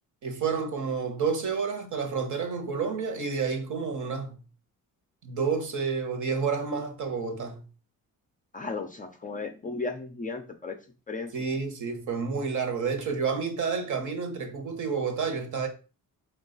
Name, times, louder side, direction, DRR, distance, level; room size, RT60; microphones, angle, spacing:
voice 1, 0.2-4.3 5.2-7.6 11.3-15.7, right 5 dB, 55° right, 1.0 m, -30 dB
voice 2, 8.5-10.7 11.1-11.3, left 3 dB, 25° left, 0.4 m, -35 dB
4.6 x 2.3 x 3.8 m
cardioid pair, 140°, 35 cm